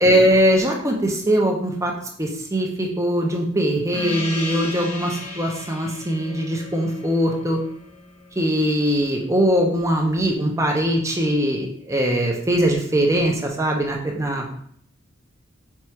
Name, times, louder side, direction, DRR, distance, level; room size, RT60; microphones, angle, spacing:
voice 1, 0.0-1.9 2.2-7.6 8.4-14.5, equal, 15° right, 1 dB, 0.6 m, -21 dB
Gong, 3.9-8.9, left 2 dB, 30° left, 0.7 m, -35 dB
4.5 x 2.4 x 4.2 m, 0.63 s
head